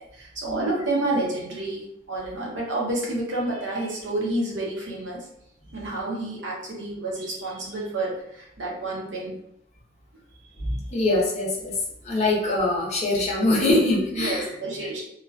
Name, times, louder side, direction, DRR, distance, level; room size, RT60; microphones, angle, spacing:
voice 1, 0.1-5.3 5.7-9.3 10.7-10.8 14.1-15.0, right 2 dB, 65° right, -4 dB, 0.8 m, -29 dB
voice 2, 10.6-11.8 12.0-14.5, left 2 dB, 35° left, -5 dB, 0.7 m, -23 dB
2.4 x 2.1 x 2.4 m, 0.78 s
head